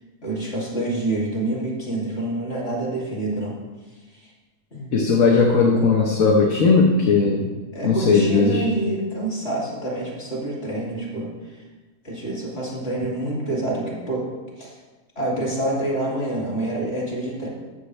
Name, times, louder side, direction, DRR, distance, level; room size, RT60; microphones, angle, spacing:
voice 1, 0.2-3.6 4.1-4.3 4.7-5.0 7.7-11.6 12.0-14.2 14.6-14.8 15.2-17.5, right 1 dB, 40° left, -4 dB, 2.9 m, -27 dB
voice 2, 4.9-7.5 7.8-8.6, left 4 dB, 60° left, 0 dB, 1.3 m, -17 dB
14.0 x 7.2 x 3.3 m, 1.2 s
omnidirectional pair, 1.7 m